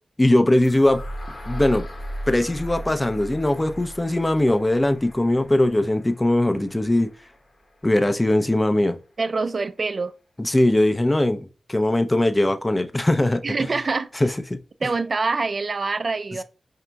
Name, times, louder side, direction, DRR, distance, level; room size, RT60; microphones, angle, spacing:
voice 1, 0.2-1.1 1.5-1.9 2.3-7.1 7.8-9.0 10.4-13.4 14.2-14.6, left 1 dB, 20° left, 0.5 m, -20 dB
sound 1, 0.6-8.6, equal, 50° left, 0.9 m, -37 dB
voice 2, 9.2-10.1 13.4-14.1 14.8-16.4, right 4 dB, 55° right, 0.4 m, -25 dB
5.0 x 2.8 x 2.2 m
cardioid pair, 45°, 0 cm